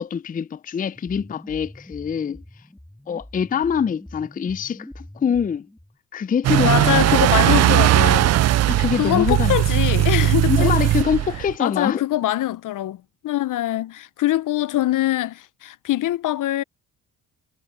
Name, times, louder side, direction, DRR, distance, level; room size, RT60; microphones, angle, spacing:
voice 1, 0.0-2.4 3.1-5.7 6.1-7.7 8.7-9.6 10.5-12.0, left 7 dB, 25° left, 0.5 m, -25 dB
sound 1, 0.9-6.0, left 1 dB, 5° left, 3.3 m, -43 dB
sound 2, 6.4-11.5, right 14 dB, 45° right, 0.4 m, -18 dB
voice 2, 6.6-8.3 9.0-10.7 11.6-13.0 13.2-16.6, left 14 dB, 60° left, 0.7 m, -23 dB
supercardioid pair, 65°, 36 cm